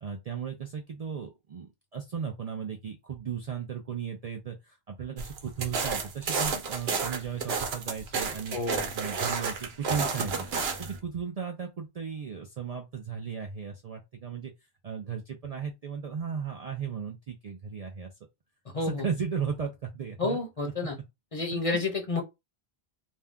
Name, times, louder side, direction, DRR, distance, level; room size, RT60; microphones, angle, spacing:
voice 1, 0.0-8.6 8.9-10.3 10.8-14.5 14.8-18.1 18.7-20.4 21.5-21.8, right 6 dB, 55° right, 0.4 m, -36 dB
sound 1, 5.2-11.0, right 5 dB, 75° right, 0.9 m, -31 dB
voice 2, 8.5-8.9 18.7-19.0 20.2-21.0 21.3-22.2, left 3 dB, 35° left, 0.7 m, -30 dB
2.6 x 2.2 x 3.4 m
omnidirectional pair, 1.1 m